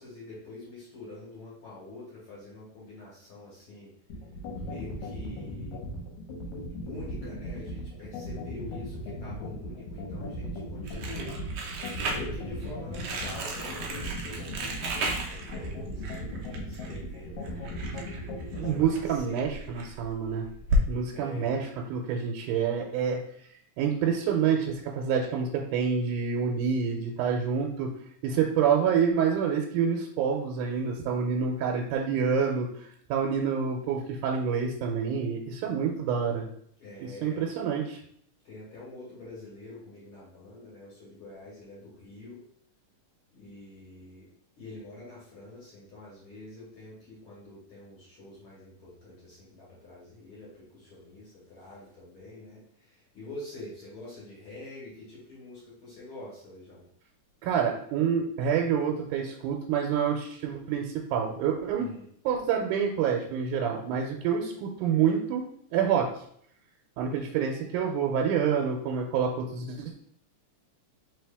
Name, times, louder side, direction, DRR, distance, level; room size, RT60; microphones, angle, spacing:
voice 1, 0.0-3.9 4.6-6.1 6.8-11.4 12.1-18.0 18.5-19.4 21.1-21.6 36.8-37.4 38.4-42.4 43.3-44.3 44.6-56.9 61.7-62.1, left 2 dB, 50° left, -7 dB, 2.1 m, -46 dB
sound 1, 4.1-18.8, left 2 dB, 80° left, 2.2 m, -37 dB
Crumpling crinkling, 10.8-20.8, equal, 75° right, 1.4 m, -34 dB
voice 2, 18.6-20.5 20.9-23.2 23.8-27.9 28.2-32.7 33.1-36.5 37.0-38.0 57.4-61.8 62.3-65.4 65.7-66.1 67.0-70.0, right 7 dB, 90° right, 1 dB, 2.1 m, -27 dB
4.5 x 3.2 x 3.4 m, 0.66 s
omnidirectional pair, 3.5 m